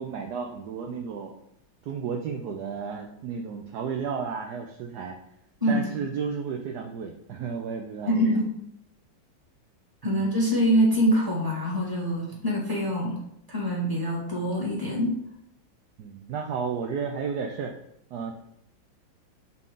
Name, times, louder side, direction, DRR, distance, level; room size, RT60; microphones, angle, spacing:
voice 1, 0.0-1.3 1.8-5.2 5.7-8.2 10.0-10.3 12.3-12.4 16.0-17.7 18.1-18.3, right 6 dB, 70° right, 2 dB, 1.0 m, -33 dB
voice 2, 8.1-8.5 10.0-13.2 13.5-15.2, equal, 10° right, -4 dB, 1.7 m, -24 dB
7.4 x 3.9 x 3.8 m, 0.74 s
omnidirectional pair, 2.1 m